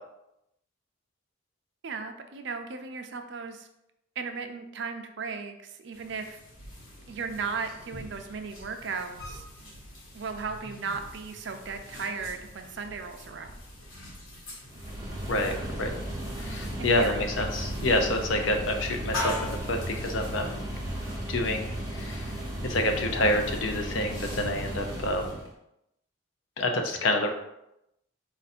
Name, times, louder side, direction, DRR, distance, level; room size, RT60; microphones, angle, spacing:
voice 1, 1.8-3.7 4.2-6.4 7.1-9.4 10.1-13.5 16.8-17.4, right 5 dB, 60° right, 6 dB, 0.5 m, -36 dB
sound 1, 5.9-25.3, left 1 dB, 85° left, 1.3 m, -43 dB
sound 2, 14.7-25.5, right 1 dB, 20° right, 0.8 m, -35 dB
voice 2, 15.3-16.0 16.4-20.6 21.3-22.3 22.6-25.4 26.6-27.3, left 1 dB, 70° left, 4 dB, 0.6 m, -28 dB
4.4 x 2.6 x 4.2 m, 0.86 s
head